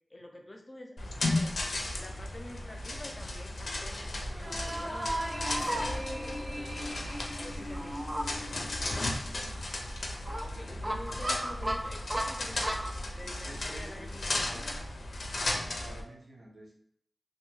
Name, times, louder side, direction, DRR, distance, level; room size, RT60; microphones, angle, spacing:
voice 1, 0.1-1.6 2.0-8.1 10.4-14.8, left 1 dB, 35° left, 1 dB, 0.6 m, -48 dB
sound 1, 1.0-16.0, left 2 dB, 85° left, 0.4 m, -35 dB
Fowl, 4.0-13.0, right 1 dB, 30° right, 0.4 m, -38 dB
sound 2, 4.3-9.1, equal, 45° right, 0.9 m, -39 dB
voice 2, 8.8-9.5 10.5-11.2 13.4-14.7 15.4-16.7, right 2 dB, 75° right, -4 dB, 0.8 m, -51 dB
2.7 x 2.1 x 3.1 m, 0.66 s
wide cardioid pair, 65°, 0 cm